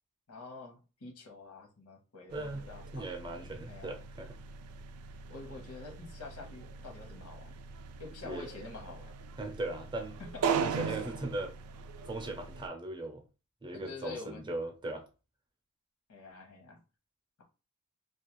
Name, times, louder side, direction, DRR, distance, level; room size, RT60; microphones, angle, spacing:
voice 1, 0.3-3.0 3.7-4.0 5.3-7.5 8.0-9.1 10.2-11.0 13.7-14.4 16.1-16.8, left 3 dB, 90° left, 0.8 m, -47 dB
voice 2, 2.3-4.4 8.2-8.5 9.4-10.2 10.6-11.5 12.0-13.2 13.6-15.0, right 2 dB, 20° right, 0.5 m, -38 dB
sound 1, 2.3-12.7, right 6 dB, 85° right, 0.3 m, -39 dB
2.3 x 2.2 x 2.9 m
head